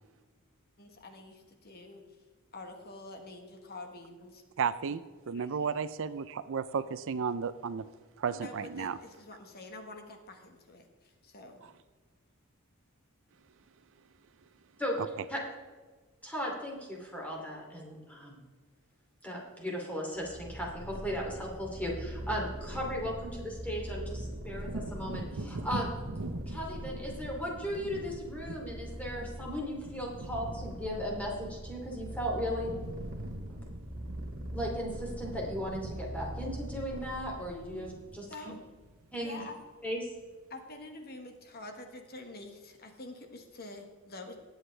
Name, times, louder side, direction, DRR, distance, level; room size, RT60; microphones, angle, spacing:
voice 1, 0.8-2.0 2.5-4.4 5.3-5.7 8.3-11.7 38.3-38.6 39.1-39.6 40.5-44.4, left 2 dB, 45° left, 4 dB, 1.4 m, -47 dB
voice 2, 4.6-5.0 5.3-7.8 8.2-9.0, right 6 dB, 65° right, 14 dB, 0.5 m, -33 dB
voice 3, 16.2-18.4 19.2-25.9 26.5-32.7 34.5-38.5 39.1-39.4 39.8-40.0, equal, 5° left, -2 dB, 2.8 m, -36 dB
Purr, 20.2-37.9, equal, 40° right, 2.0 m, -42 dB
Wind / Thunder, 24.6-32.2 32.5-39.7 40.1-40.3, right 2 dB, 85° right, 1.0 m, -44 dB
20.0 x 8.0 x 3.3 m, 1.4 s
head